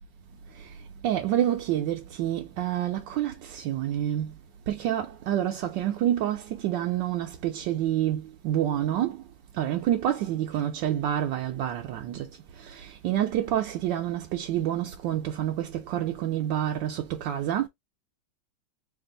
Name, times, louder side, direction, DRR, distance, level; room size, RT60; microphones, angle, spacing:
voice 1, 0.5-4.4 4.7-9.2 9.5-17.7, right 11 dB, 70° right, 1.1 m, -28 dB
3.5 x 2.5 x 3.7 m
omnidirectional pair, 2.3 m